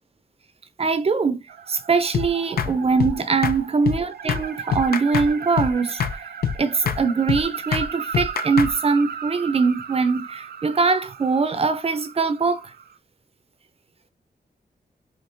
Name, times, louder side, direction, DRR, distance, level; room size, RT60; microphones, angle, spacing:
voice 1, 0.8-6.3 6.6-12.7, right 4 dB, 40° right, 0.6 m, -22 dB
sound 1, 1.5-13.0, right 7 dB, 80° right, 0.6 m, -36 dB
sound 2, 2.1-2.3 2.6-2.7 3.0-3.2 3.4-3.6 3.9-4.0 4.3-4.4 4.7-5.3 5.6-5.7 6.0-6.2 6.4-6.6 6.9-7.0 7.3-7.4 7.7-7.9 8.1-8.7, left 8 dB, 75° left, 0.5 m, -24 dB
5.1 x 2.8 x 2.7 m
wide cardioid pair, 145°, 16 cm